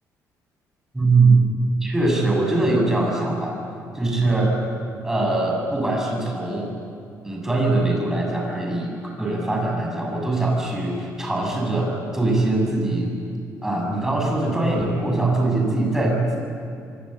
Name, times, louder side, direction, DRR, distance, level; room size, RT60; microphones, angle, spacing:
voice 1, 0.9-1.4 1.8-3.6 3.9-4.5 5.0-6.7 7.2-13.1 13.6-16.4, right 2 dB, 5° right, 0 dB, 6.4 m, -22 dB
26.5 x 24.0 x 8.8 m, 2.4 s
cardioid pair, 160°, 6 cm